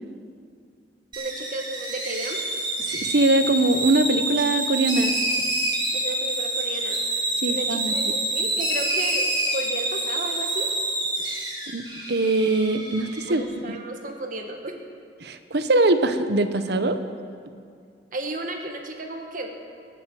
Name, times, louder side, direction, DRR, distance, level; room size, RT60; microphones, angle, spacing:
sound 1, 1.1-13.4, right 1 dB, 25° right, 2.5 m, -27 dB
voice 1, 1.2-2.4 5.9-7.0 7.5-10.7 13.3-14.8 18.1-19.5, right 2 dB, 50° right, 3 dB, 1.5 m, -33 dB
voice 2, 2.9-5.1 7.4-7.9 11.7-13.7 15.2-17.0, right 2 dB, 65° right, 9 dB, 0.9 m, -22 dB
20.0 x 7.6 x 7.7 m, 2.2 s
head